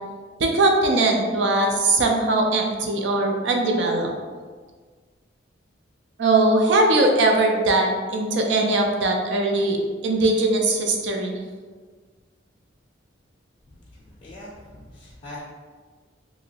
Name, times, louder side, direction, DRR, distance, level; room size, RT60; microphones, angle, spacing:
voice 1, 0.4-4.1 6.2-9.8 10.0-11.3, right 2 dB, 65° right, 2 dB, 0.4 m, -20 dB
voice 2, 13.7-15.4, left 1 dB, 35° left, -8 dB, 0.5 m, -42 dB
2.9 x 2.6 x 2.8 m, 1.5 s
head